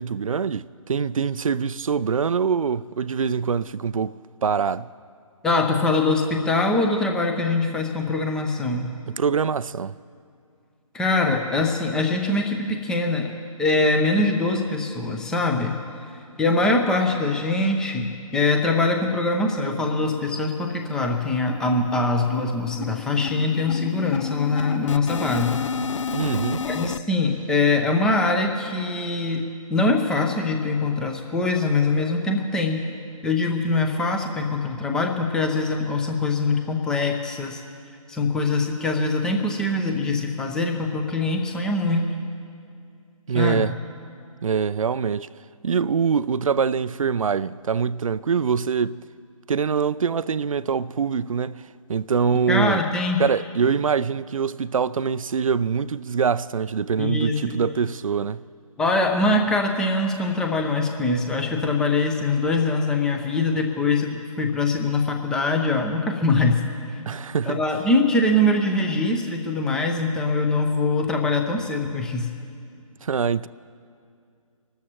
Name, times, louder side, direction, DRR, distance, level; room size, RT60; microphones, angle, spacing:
voice 1, 0.0-4.9 9.1-9.9 26.1-26.7 43.3-43.7 44.4-45.3 45.6-49.0 49.5-51.6 51.9-52.8 53.2-58.4 67.1-67.6 73.0-73.5, right 6 dB, 70° right, 0.4 m, -24 dB
voice 2, 5.4-9.0 10.9-13.3 13.6-15.8 16.1-25.6 26.7-29.4 29.7-32.9 33.2-37.6 38.1-42.1 43.3-43.8 52.5-53.2 57.0-57.6 58.8-66.6 66.9-67.0 67.4-72.3, left 2 dB, 5° left, 0.6 m, -23 dB
sound 1, 19.7-19.8 20.2-20.3 20.6-20.8 21.0-27.0, left 6 dB, 60° left, 0.5 m, -31 dB
26.0 x 13.0 x 3.0 m
figure-of-eight pair, 150°, 18 cm